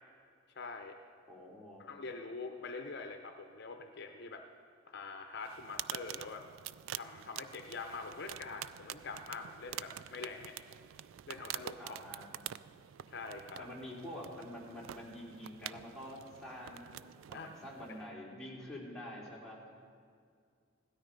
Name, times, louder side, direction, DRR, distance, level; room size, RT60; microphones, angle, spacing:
voice 1, 0.5-1.0 1.8-4.4 4.9-6.4 6.9-10.6 11.3-11.9 13.1-13.7 17.3-17.5, left 4 dB, 55° left, 5 dB, 0.7 m, -44 dB
voice 2, 1.3-1.8 11.8-12.3 13.6-17.0 17.3-19.6, left 1 dB, 5° left, -5 dB, 3.0 m, -47 dB
sound 1, 5.4-18.1, right 11 dB, 75° right, 0.3 m, -47 dB
16.5 x 13.0 x 5.2 m, 2.2 s
head